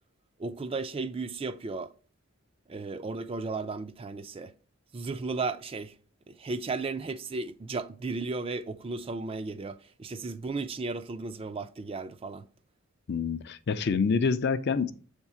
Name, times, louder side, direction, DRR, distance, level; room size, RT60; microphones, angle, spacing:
voice 1, 0.4-1.9 2.7-4.5 4.9-6.0 6.3-12.5, right 3 dB, 25° right, 0.3 m, -35 dB
voice 2, 13.1-14.9, left 5 dB, 50° left, 0.4 m, -27 dB
7.2 x 3.6 x 4.3 m
head